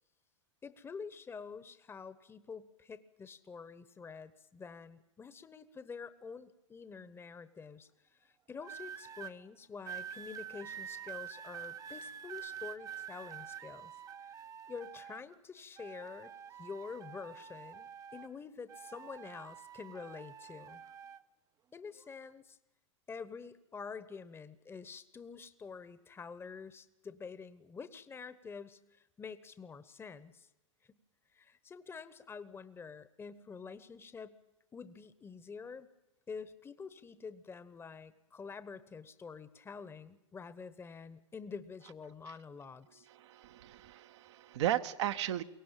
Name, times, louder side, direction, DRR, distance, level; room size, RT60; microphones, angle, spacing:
voice 1, 0.6-7.9 8.2-13.9 14.2-14.3 14.7-16.3 16.6-20.8 21.7-22.6 23.1-30.5 30.9-31.0 31.3-34.4 34.7-35.9 36.3-43.1, left 5 dB, 15° left, 14 dB, 1.0 m, -47 dB
sound 1, 8.6-9.3 9.9-15.4 15.8-18.4 18.7-21.2 22.0-22.3, right 8 dB, 20° right, 0.7 m, -47 dB
voice 2, 43.1-45.4, right 12 dB, 60° right, 9 dB, 1.0 m, -35 dB
23.0 x 18.0 x 8.9 m, 0.96 s
hypercardioid pair, 105°, 16 cm